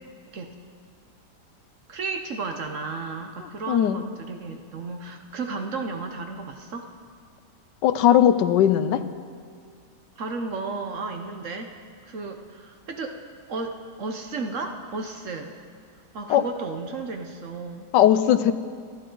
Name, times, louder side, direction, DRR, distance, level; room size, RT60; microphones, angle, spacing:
voice 1, 1.9-6.9 10.2-11.7 12.0-13.2 13.5-15.5 16.1-17.9, right 3 dB, 55° right, 4 dB, 1.1 m, -33 dB
voice 2, 3.7-4.0 7.8-9.0 16.3-16.4 17.9-18.5, left 10 dB, 85° left, 12 dB, 1.3 m, -18 dB
25.5 x 12.0 x 3.9 m, 2.3 s
omnidirectional pair, 1.8 m